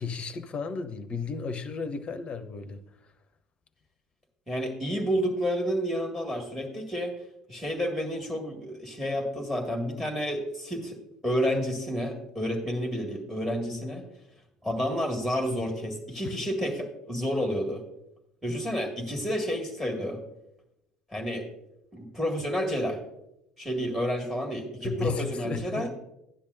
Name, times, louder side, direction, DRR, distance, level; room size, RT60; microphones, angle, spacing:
voice 1, 0.0-2.8 16.2-16.4 24.8-25.9, left 5 dB, 30° left, 11 dB, 0.7 m, -34 dB
voice 2, 4.5-7.1 7.5-14.1 14.6-17.8 18.4-20.2 21.1-21.5 21.9-23.0 23.6-25.9, equal, 5° right, 2 dB, 1.9 m, -30 dB
12.5 x 10.0 x 2.6 m, 0.85 s
figure-of-eight pair, 65°, 4 cm